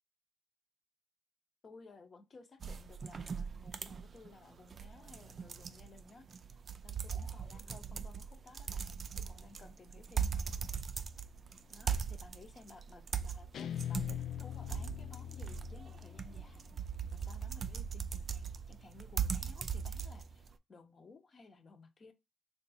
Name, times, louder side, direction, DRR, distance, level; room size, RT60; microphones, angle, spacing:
voice 1, 1.6-6.3 6.8-10.6 11.7-16.6 17.1-22.1, left 3 dB, 40° left, 0.8 m, -57 dB
sound 1, 2.6-20.5, right 7 dB, 45° right, 0.3 m, -40 dB
Guitar, 13.5-16.7, left 11 dB, 65° left, 0.3 m, -42 dB
3.2 x 2.4 x 3.9 m
cardioid pair, 90°, 0 cm